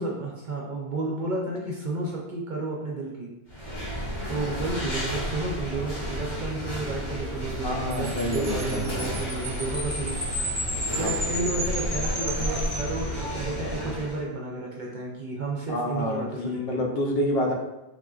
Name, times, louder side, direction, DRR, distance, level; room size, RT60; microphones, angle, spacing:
voice 1, 0.0-3.3 4.3-16.8, right 2 dB, 55° right, -2 dB, 0.6 m, -32 dB
sound 1, 3.5-14.2, equal, 25° left, 0.7 m, -32 dB
voice 2, 7.6-9.2 11.0-11.1 15.7-17.5, left 1 dB, 65° left, 0 dB, 0.8 m, -28 dB
Wind chime, 7.9-13.6, equal, 5° right, 0.6 m, -33 dB
3.5 x 2.5 x 2.3 m, 0.96 s
omnidirectional pair, 1.1 m